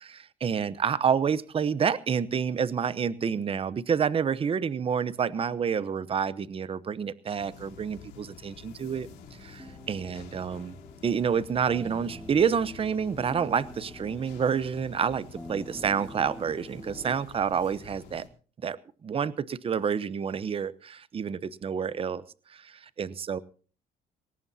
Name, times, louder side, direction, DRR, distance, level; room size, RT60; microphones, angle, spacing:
voice 1, 0.1-9.1 9.4-10.8 11.0-18.3 18.6-22.2 22.5-23.4, right 7 dB, 35° right, 18 dB, 0.9 m, -28 dB
sound 1, 7.4-18.3, left 7 dB, 90° left, 3.4 m, -49 dB
sound 2, 8.9-17.2, equal, ahead, 2.1 m, -47 dB
21.0 x 18.5 x 2.8 m, 0.39 s
cardioid pair, 110°, 17 cm